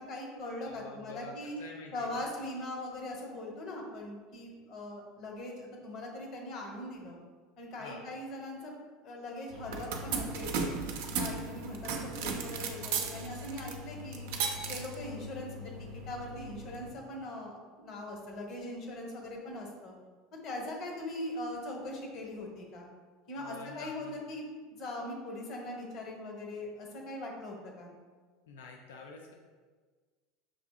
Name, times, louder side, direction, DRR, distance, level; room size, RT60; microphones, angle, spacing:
voice 1, 0.0-1.5 1.9-7.2 7.6-8.7 9.0-10.6 11.2-14.3 14.7-19.9 20.4-22.9 23.3-27.9, left 1 dB, 50° left, 1 dB, 1.0 m, -41 dB
voice 2, 0.6-2.3 7.8-8.2 23.3-24.1 28.5-29.3, left 3 dB, 80° left, 1 dB, 0.4 m, -48 dB
sound 1, 9.5-16.9, right 4 dB, 70° right, 0.5 m, -37 dB
6.0 x 2.7 x 2.3 m, 1.5 s
hypercardioid pair, 85°, 0 cm